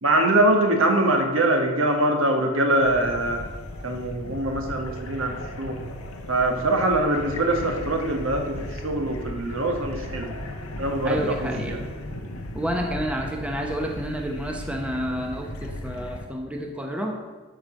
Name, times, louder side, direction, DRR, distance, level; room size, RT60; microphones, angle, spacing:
voice 1, 0.0-3.4 3.8-5.8 6.3-10.3 10.8-11.8, right 1 dB, 70° right, 3 dB, 1.6 m, -23 dB
sound 1, 2.8-16.2, left 1 dB, 85° left, 1.2 m, -36 dB
voice 2, 11.0-11.7 12.5-17.2, equal, 5° right, 2 dB, 0.9 m, -29 dB
13.0 x 5.1 x 6.3 m, 1.3 s
head